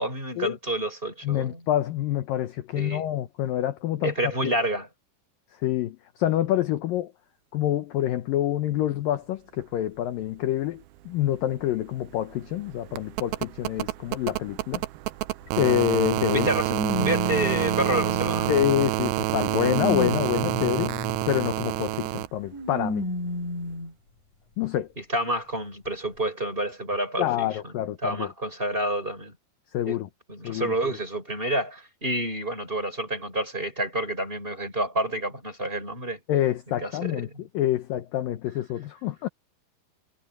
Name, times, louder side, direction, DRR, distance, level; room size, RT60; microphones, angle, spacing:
voice 1, 0.0-1.6 2.8-3.1 4.0-4.9 16.3-18.5 25.0-27.7 28.0-29.3 29.9-30.0 30.3-36.2 36.8-37.4, right 1 dB, 10° right, 4.8 m, -29 dB
voice 2, 1.2-4.1 4.4-4.5 5.6-7.1 7.5-14.8 15.6-16.5 18.5-20.9 21.3-23.0 24.6-24.9 27.2-28.3 29.7-30.1 30.4-30.7 36.3-39.3, left 12 dB, 75° left, 2.2 m, -27 dB
sound 1, 11.0-11.1 11.4-22.3 23.7-23.8, right 18 dB, 85° right, 2.2 m, -28 dB
sound 2, 15.5-15.6 16.7-18.7 19.3-21.3 22.5-23.9 24.6-24.7 25.9-26.0, left 1 dB, 45° left, 7.6 m, -31 dB
omnidirectional pair, 5.1 m